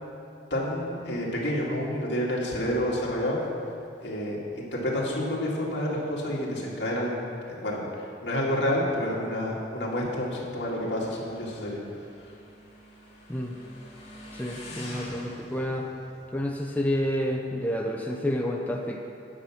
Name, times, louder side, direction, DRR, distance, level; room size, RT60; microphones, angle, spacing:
voice 1, 0.5-3.4 4.0-7.9 8.2-11.8, left 1 dB, 70° left, -4 dB, 2.1 m, -29 dB
Motorcycle, 9.6-17.5, left 1 dB, 35° left, 2.5 m, -46 dB
voice 2, 14.3-15.9 16.3-19.0, equal, 10° left, 0 dB, 0.6 m, -29 dB
10.0 x 6.0 x 7.1 m, 2.5 s
head